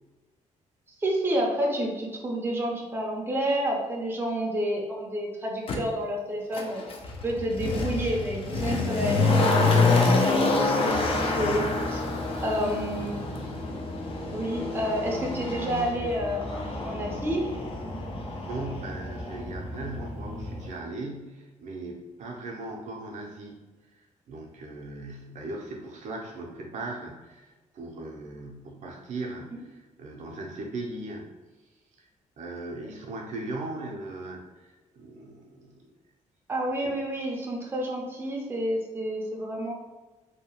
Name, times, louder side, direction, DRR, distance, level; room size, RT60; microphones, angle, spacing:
voice 1, 1.0-6.9 7.2-9.7 10.1-12.0 12.4-13.4 14.3-17.5 36.5-39.7, equal, 15° right, -1 dB, 0.5 m, -29 dB
Motor vehicle (road), 5.7-5.8 6.5-19.4 19.7-19.8, left 3 dB, 45° left, 0.4 m, -27 dB
voice 2, 10.7-11.1 18.5-23.6 23.9-31.3 32.0-32.1 32.4-35.9 36.8-36.9, right 2 dB, 65° right, 0 dB, 0.5 m, -38 dB
sound 1, 10.9-20.7, equal, 65° left, 0.8 m, -38 dB
2.7 x 2.2 x 2.8 m, 1.2 s
cardioid pair, 135°, 13 cm